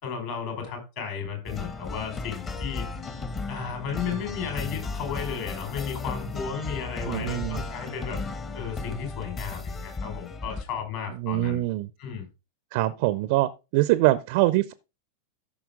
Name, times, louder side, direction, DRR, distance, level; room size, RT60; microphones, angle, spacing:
voice 1, 0.0-2.9 3.5-8.2 8.5-11.6 12.0-12.3, left 7 dB, 50° left, 4.6 m, -34 dB
sound 1, 1.5-10.6, left 4 dB, 20° left, 1.1 m, -35 dB
voice 2, 7.1-7.6 11.1-11.9 12.7-14.7, right 17 dB, 50° right, 0.5 m, -24 dB
13.5 x 5.9 x 3.6 m
figure-of-eight pair, 90°, 0 cm